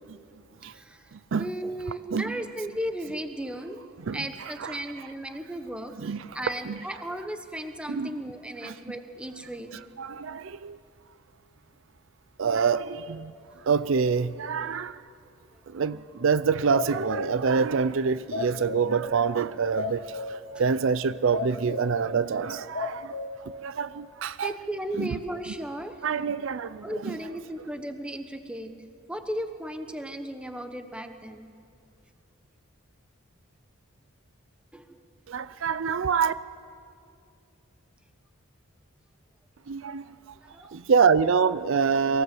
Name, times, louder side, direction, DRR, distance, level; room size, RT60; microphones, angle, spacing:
voice 1, 1.4-3.8 4.1-5.9 6.3-9.7 24.4-25.9 26.8-28.7 29.1-31.5 34.7-35.0 40.4-40.8, right 1 dB, 5° right, 1.0 m, -35 dB
voice 2, 4.0-4.8 6.0-6.4 6.6-6.8 7.9-8.2 8.6-8.7 9.7-10.8 12.4-13.3 13.6-15.0 15.7-23.1 23.4-24.5 25.0-25.2 26.0-27.2 35.3-36.3 39.7-40.0 40.7-42.2, right 5 dB, 65° right, 0.5 m, -26 dB
sound 1, 16.7-17.4 18.3-19.0 19.8-20.4 21.0-21.1 21.3-22.0 22.4-23.3, left 3 dB, 60° left, 1.9 m, -33 dB
24.0 x 17.0 x 7.7 m
head